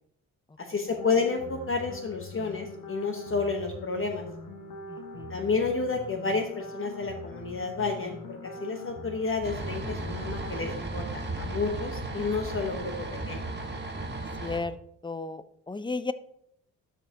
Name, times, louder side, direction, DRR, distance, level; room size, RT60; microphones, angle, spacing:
voice 1, 0.6-4.2 5.3-13.5, left 4 dB, 35° left, 4 dB, 1.1 m, -30 dB
sound 1, 0.9-10.7, left 2 dB, 65° left, 1.2 m, -42 dB
voice 2, 4.9-5.4 14.4-14.8 15.0-16.1, left 3 dB, 15° left, 14 dB, 0.5 m, -34 dB
sound 2, 9.4-14.6, right 2 dB, 30° right, 1.7 m, -35 dB
12.0 x 4.9 x 2.8 m, 0.71 s
supercardioid pair, 55°, 35 cm